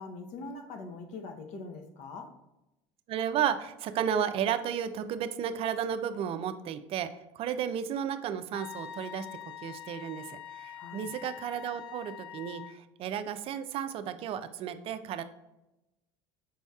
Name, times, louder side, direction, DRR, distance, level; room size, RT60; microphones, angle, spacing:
voice 1, 0.0-2.3 10.7-11.1, left 3 dB, 60° left, 5 dB, 0.8 m, -42 dB
voice 2, 3.1-7.1 7.3-9.3 9.6-15.2, right 9 dB, 45° right, 10 dB, 0.4 m, -33 dB
Wind instrument woodwind instrument, 8.5-12.8, left 10 dB, 80° left, 0.4 m, -45 dB
5.3 x 4.1 x 2.3 m, 0.95 s
supercardioid pair, 100°, 13 cm